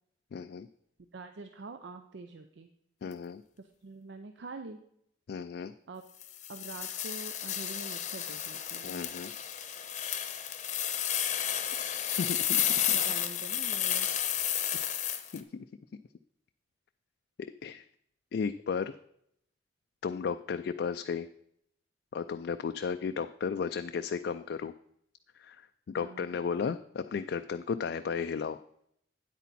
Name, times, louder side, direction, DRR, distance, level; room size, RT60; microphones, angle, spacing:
voice 1, 0.3-0.7 3.0-3.4 5.3-5.7 8.8-9.3 12.2-13.0 14.7-14.9 15.3-15.6 17.6-17.8 18.3-19.0 20.0-21.3 22.1-24.7 25.4-25.6 25.9-28.6, left 6 dB, 60° left, 8 dB, 0.3 m, -34 dB
voice 2, 1.1-2.7 3.6-4.8 5.9-6.0 6.5-9.0 11.9-12.2 12.7-14.1 26.0-26.4, right 3 dB, 70° right, 8 dB, 0.5 m, -45 dB
sound 1, 6.2-15.4, left 10 dB, 40° left, 0.8 m, -32 dB
9.2 x 8.3 x 4.1 m, 0.72 s
head